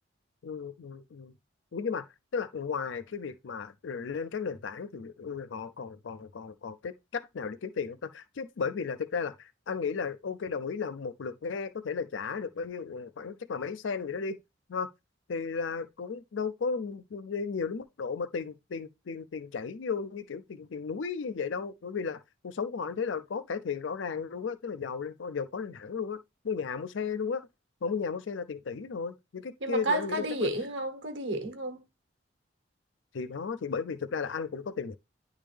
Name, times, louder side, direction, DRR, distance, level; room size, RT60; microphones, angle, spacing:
voice 1, 0.4-1.3 1.7-2.0 2.3-14.4 14.7-14.9 15.3-26.2 26.4-27.4 27.8-30.5 33.1-35.0, left 5 dB, 75° left, 0.5 m, -34 dB
voice 2, 29.6-31.8, right 2 dB, 70° right, 1.2 m, -31 dB
9.9 x 3.6 x 3.3 m
head